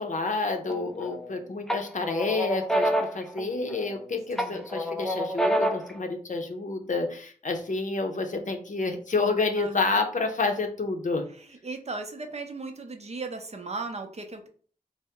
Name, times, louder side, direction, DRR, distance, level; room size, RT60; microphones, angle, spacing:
voice 1, 0.0-11.3, left 3 dB, 55° left, 5 dB, 0.6 m, -29 dB
sound 1, 0.7-1.3 1.7-4.0 4.4-6.0, equal, 5° left, 0.4 m, -28 dB
voice 2, 4.4-4.7 9.6-10.0 11.6-14.5, right 3 dB, 45° right, 5 dB, 0.6 m, -36 dB
2.7 x 2.0 x 3.5 m, 0.44 s
cardioid pair, 55°, 16 cm